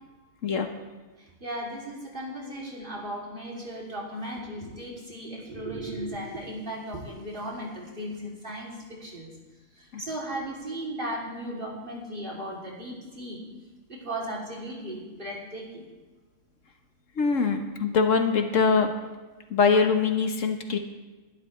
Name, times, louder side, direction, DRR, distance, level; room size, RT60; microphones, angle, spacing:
voice 1, 1.4-9.3 9.8-13.4 13.9-15.8, right 1 dB, 40° right, -4 dB, 3.2 m, -36 dB
voice 2, 17.2-18.9 19.5-20.8, left 5 dB, 65° left, 5 dB, 1.5 m, -23 dB
21.5 x 11.5 x 3.3 m, 1.2 s
omnidirectional pair, 1.4 m